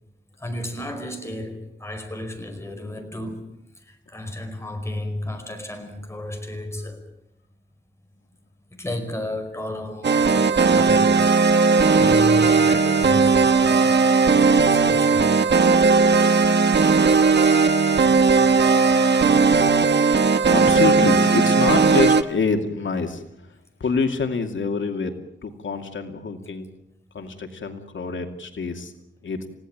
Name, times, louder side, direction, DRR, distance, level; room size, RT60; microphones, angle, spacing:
voice 1, 0.4-3.5 3.8-7.1 8.7-14.1 14.6-15.3 19.1-19.2, left 1 dB, 15° left, 5.0 m, -33 dB
sound 1, 10.0-22.2, right 4 dB, 65° right, 1.3 m, -17 dB
voice 2, 20.5-25.1 25.4-26.7 27.1-28.9 29.2-29.4, left 4 dB, 85° left, 2.5 m, -26 dB
30.0 x 17.0 x 8.9 m
wide cardioid pair, 145°, 19 cm